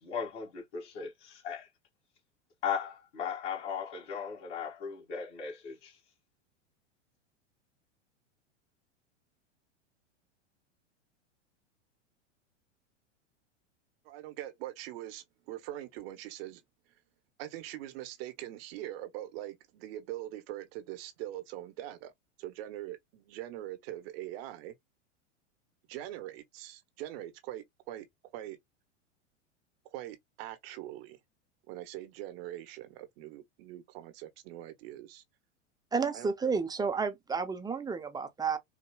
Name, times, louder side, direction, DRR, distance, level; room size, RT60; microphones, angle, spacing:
voice 1, 0.0-1.7 2.6-5.9, left 7 dB, 50° left, 2.3 m, -37 dB
voice 2, 14.0-16.6 17.4-22.1 22.4-24.7 25.9-28.1 28.3-28.6 29.9-31.2 31.7-35.2 36.1-36.3, right 14 dB, 55° right, 1.0 m, -42 dB
voice 3, 35.9-38.6, right 5 dB, 10° right, 0.6 m, -31 dB
4.7 x 2.3 x 2.3 m
hypercardioid pair, 100°, 36 cm